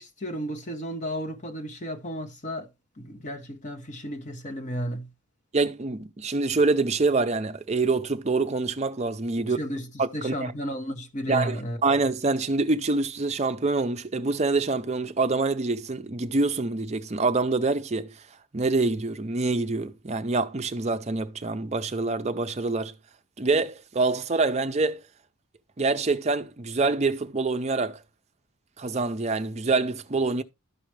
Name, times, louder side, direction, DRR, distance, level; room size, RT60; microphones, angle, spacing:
voice 1, 0.0-2.7 3.0-5.1 9.4-11.8, equal, 35° left, 1.1 m, -33 dB
voice 2, 5.5-9.6 10.0-10.5 11.3-18.1 18.5-22.9 23.4-25.0 25.8-28.0 28.8-30.4, right 3 dB, 30° right, 0.5 m, -26 dB
12.5 x 5.0 x 3.2 m
head